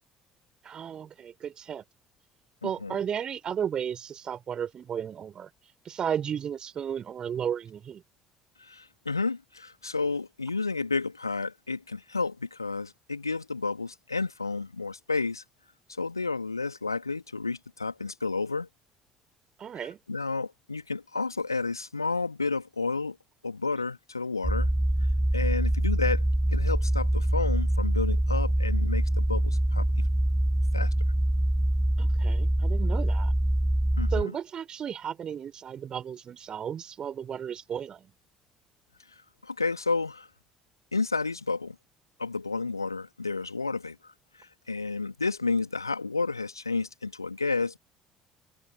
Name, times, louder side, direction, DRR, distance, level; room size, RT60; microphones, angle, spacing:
voice 1, 0.6-1.8 2.6-5.5 5.9-8.0 19.6-20.0 32.0-33.3 34.1-38.1, right 8 dB, 40° right, 5.3 m, -34 dB
voice 2, 2.6-3.0 8.6-15.4 15.9-18.7 19.8-23.2 23.4-24.7 25.3-26.2 26.5-29.9 30.7-30.9 34.0-34.3 39.4-40.3 40.9-41.8 42.2-44.1 44.4-47.8, left 4 dB, 85° left, 2.6 m, -31 dB
sound 1, 24.4-34.2, right 1 dB, 5° right, 1.0 m, -25 dB
figure-of-eight pair, 55°, 2 cm